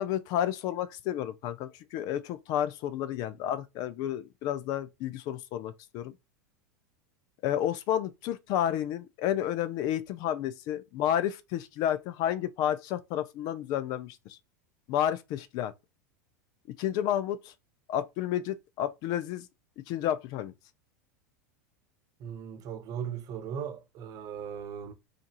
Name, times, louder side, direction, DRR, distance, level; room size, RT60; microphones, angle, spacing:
voice 1, 0.0-6.1 7.4-14.4 14.9-15.7 16.8-17.5 17.9-19.5 19.9-20.5, left 11 dB, 50° left, 0.6 m, -31 dB
voice 2, 22.2-24.9, right 8 dB, 45° right, 1.0 m, -38 dB
5.0 x 2.7 x 2.9 m
hypercardioid pair, 90°, 9 cm